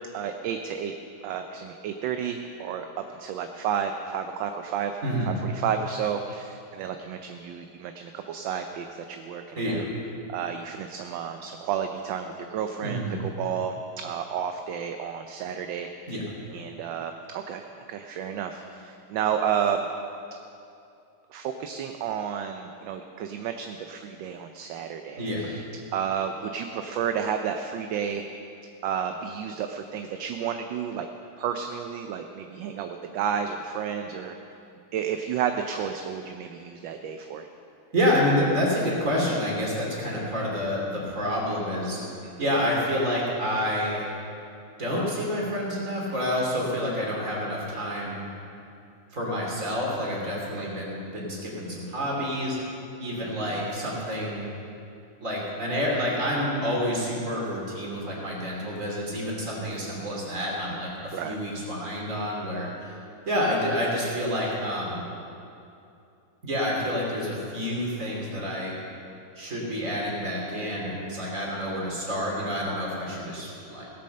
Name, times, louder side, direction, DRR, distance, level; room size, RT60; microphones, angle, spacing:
voice 1, 0.1-0.9 1.2-5.0 5.2-9.8 10.3-16.1 16.5-19.9 21.3-25.6 25.9-28.2 28.8-31.1 31.4-34.6 34.9-37.5 42.2-42.4 50.5-50.7 53.2-53.6 61.1-61.4, right 8 dB, 70° right, 6 dB, 1.3 m, -31 dB
voice 2, 9.6-9.9 12.8-13.1 16.1-16.2 25.2-25.5 37.9-42.0 42.4-44.1 44.8-48.2 49.1-52.6 53.0-54.5 55.2-62.9 63.2-65.0 66.4-68.8 69.4-73.9, equal, 40° right, -3 dB, 3.2 m, -28 dB
17.5 x 8.5 x 6.5 m, 2.6 s
omnidirectional pair, 2.3 m